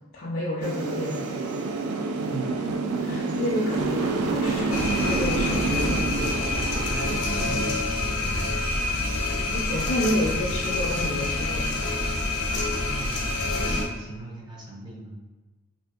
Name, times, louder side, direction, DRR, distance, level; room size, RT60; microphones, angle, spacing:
voice 1, 0.1-1.3 3.0-6.0 9.5-11.7, left 1 dB, 50° left, -5 dB, 0.4 m, -30 dB
sound 1, 0.6-7.2, right 3 dB, 90° right, 0.3 m, -27 dB
voice 2, 2.3-2.7 6.0-9.6 12.3-15.2, right 3 dB, 20° right, -4 dB, 0.6 m, -40 dB
sound 2, 4.7-13.8, left 2 dB, 85° left, 0.7 m, -27 dB
3.2 x 2.6 x 2.4 m, 1.2 s
head